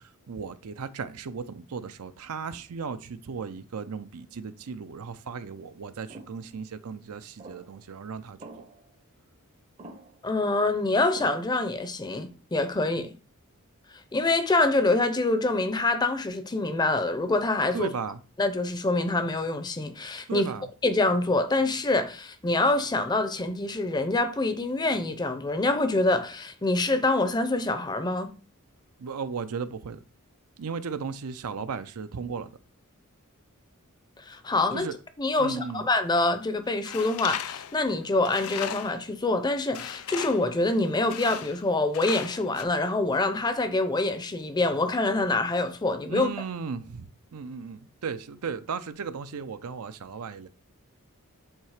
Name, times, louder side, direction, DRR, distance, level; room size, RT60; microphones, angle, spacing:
voice 1, 0.0-8.4 17.7-18.2 20.3-20.6 29.0-30.0 30.6-32.5 34.7-35.0 35.4-35.8 46.1-50.5, right 5 dB, 80° right, 0.5 m, -36 dB
sound 1, 6.1-6.4 7.4-7.8 8.4-8.9 9.8-10.3 11.2-11.7, right 2 dB, 30° right, 0.6 m, -46 dB
voice 2, 10.2-13.1 14.1-17.9 18.4-20.5 20.8-28.3 34.2-34.9 35.2-46.3, left 2 dB, 20° left, 0.5 m, -25 dB
Tools, 36.8-39.1 39.7-40.5 41.1-41.7 41.9-42.6, left 10 dB, 75° left, 0.4 m, -37 dB
7.3 x 2.9 x 4.8 m
head